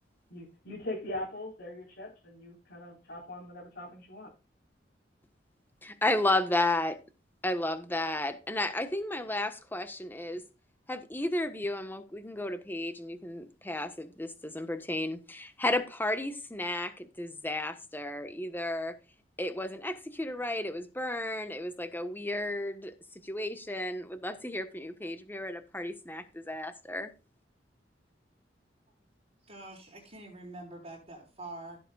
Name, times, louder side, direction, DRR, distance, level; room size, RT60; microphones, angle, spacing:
voice 1, 0.3-4.3, left 1 dB, 65° left, 4.1 m, -41 dB
voice 2, 5.8-7.0 7.4-10.4 10.9-19.0 19.4-22.9 23.2-27.1, left 1 dB, 10° left, 1.2 m, -33 dB
voice 3, 29.4-31.8, right 2 dB, 35° right, 4.6 m, -45 dB
16.0 x 7.8 x 2.4 m
head